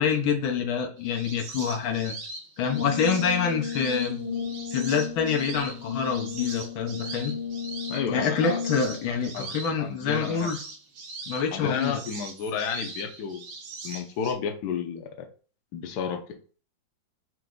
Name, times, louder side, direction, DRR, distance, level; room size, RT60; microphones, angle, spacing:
voice 1, 0.0-2.2 2.6-4.2 4.7-7.3 8.1-10.6 11.3-12.0, left 6 dB, 85° left, 3 dB, 1.7 m, -26 dB
sound 1, 1.0-14.3, right 3 dB, 75° right, 1.8 m, -41 dB
Brass instrument, 2.6-9.0, left 6 dB, 35° right, 1.0 m, -34 dB
voice 2, 7.9-8.6 9.3-10.5 11.5-13.5 13.8-15.1 15.7-16.2, left 6 dB, 65° left, 4 dB, 1.2 m, -31 dB
4.6 x 3.0 x 3.8 m, 0.39 s
omnidirectional pair, 2.1 m